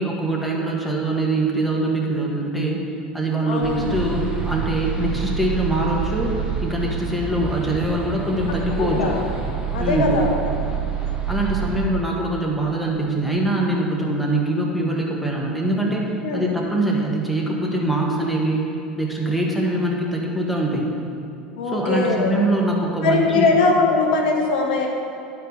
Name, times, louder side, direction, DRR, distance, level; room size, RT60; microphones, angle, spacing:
voice 1, 0.0-2.8 3.1-9.1 9.8-10.1 11.3-16.1 16.3-18.7 19.0-20.9 21.7-23.5, right 1 dB, ahead, -3 dB, 1.6 m, -23 dB
voice 2, 3.5-3.9 8.8-9.2 9.7-10.4 16.2-16.5 21.6-22.4 23.0-24.9, left 3 dB, 65° left, 1 dB, 1.0 m, -21 dB
sound 1, 3.6-11.8, right 7 dB, 20° right, 1.6 m, -27 dB
10.5 x 4.6 x 5.5 m, 2.7 s
figure-of-eight pair, 75°, 5 cm